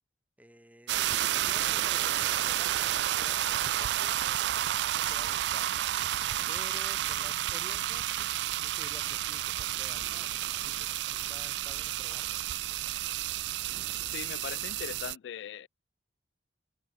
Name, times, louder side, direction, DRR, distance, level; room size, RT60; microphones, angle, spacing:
voice 1, 0.4-1.0 1.4-5.8 6.5-12.4, equal, 10° right, 6.4 m, -53 dB
sound 1, 0.9-15.1, right 13 dB, 70° right, 0.3 m, -31 dB
voice 2, 14.1-15.7, left 9 dB, 80° left, 0.3 m, -40 dB
open air
head